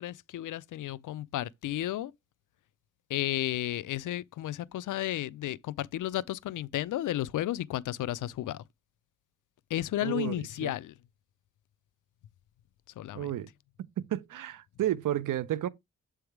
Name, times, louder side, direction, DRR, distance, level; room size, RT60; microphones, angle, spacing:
voice 1, 0.0-2.1 3.1-8.6 9.7-10.9 13.0-13.3, left 14 dB, 75° left, 0.5 m, -33 dB
voice 2, 10.0-10.8 13.1-13.5 14.0-15.7, right 12 dB, 85° right, 0.6 m, -32 dB
7.8 x 3.4 x 4.6 m
wide cardioid pair, 120°, 31 cm